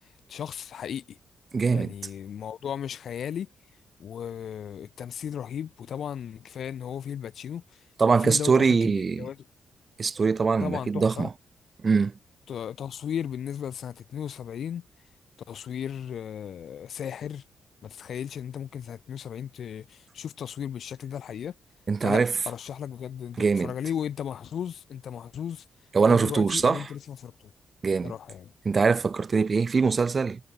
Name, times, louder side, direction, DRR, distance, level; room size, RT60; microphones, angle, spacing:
voice 1, 0.3-1.2 1.7-3.5 4.0-7.8 8.2-9.4 10.6-11.3 12.5-14.8 15.5-17.4 17.8-21.5 22.0-25.6 26.0-27.3 28.0-28.5, left 9 dB, 60° left, 6.3 m, -35 dB
voice 2, 1.5-1.9 8.0-9.3 10.0-11.3 11.8-12.1 21.9-22.3 23.4-23.7 25.9-26.8 27.8-28.1 28.7-30.4, right 5 dB, 30° right, 5.4 m, -23 dB
wide cardioid pair, 165°, 0 cm